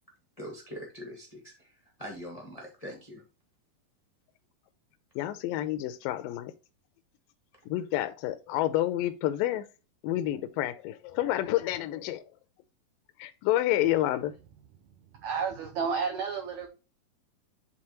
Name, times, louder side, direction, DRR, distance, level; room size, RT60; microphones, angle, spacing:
voice 1, 0.4-1.5 2.0-3.2, equal, 60° left, 0.3 m, -42 dB
voice 2, 5.2-6.5 7.7-9.7 10.0-12.2 13.2-14.3, left 14 dB, 80° left, 2.1 m, -29 dB
voice 3, 15.1-16.7, right 6 dB, 75° right, 1.7 m, -31 dB
9.8 x 3.9 x 3.0 m
omnidirectional pair, 4.2 m